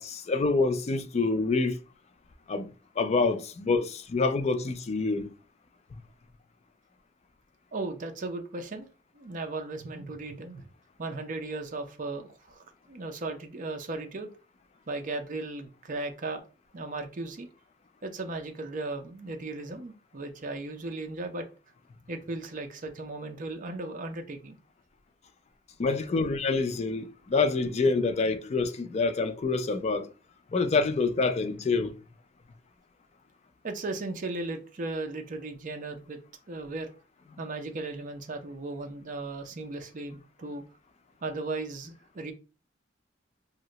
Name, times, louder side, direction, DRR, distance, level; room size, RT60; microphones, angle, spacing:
voice 1, 0.0-1.8 2.5-5.3 5.9-6.0 25.8-30.1 30.5-32.0, left 3 dB, 35° left, 0.4 m, -27 dB
voice 2, 7.7-8.9 9.1-10.7 11.0-14.3 14.9-16.4 16.7-17.5 18.0-21.5 22.1-24.5 33.6-36.2 36.5-36.9 37.4-40.6 41.2-42.3, right 2 dB, 45° right, 0.5 m, -36 dB
2.7 x 2.1 x 3.8 m
head